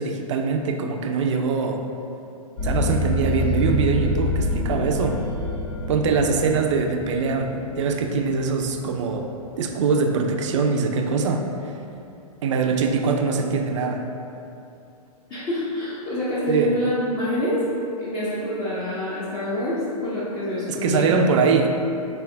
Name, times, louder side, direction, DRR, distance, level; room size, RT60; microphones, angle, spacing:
voice 1, 0.0-1.8 2.6-5.2 5.9-9.3 9.6-11.4 12.4-14.0 16.5-16.7 20.7-21.7, right 5 dB, 50° right, 4 dB, 0.4 m, -22 dB
sound 1, 2.6-9.5, left 1 dB, 55° left, 1.4 m, -27 dB
voice 2, 15.3-17.6 18.0-21.2, left 1 dB, 25° left, -10 dB, 0.8 m, -26 dB
4.3 x 3.4 x 3.3 m, 2.7 s
hypercardioid pair, 120°, 20 cm